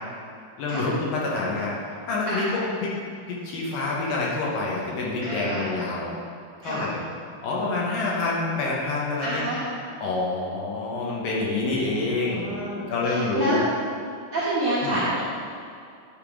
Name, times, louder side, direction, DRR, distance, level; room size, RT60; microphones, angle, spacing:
voice 1, 0.6-2.9 3.3-6.1 6.6-7.0 7.4-9.5 10.0-12.5 12.9-13.6 14.8-15.0, left 3 dB, 75° left, -4 dB, 2.6 m, -27 dB
voice 2, 5.2-5.7 6.6-6.9 9.2-9.6 11.7-13.6 14.3-15.2, right 1 dB, 65° right, -9 dB, 1.4 m, -29 dB
10.0 x 5.1 x 3.6 m, 2.4 s
omnidirectional pair, 4.3 m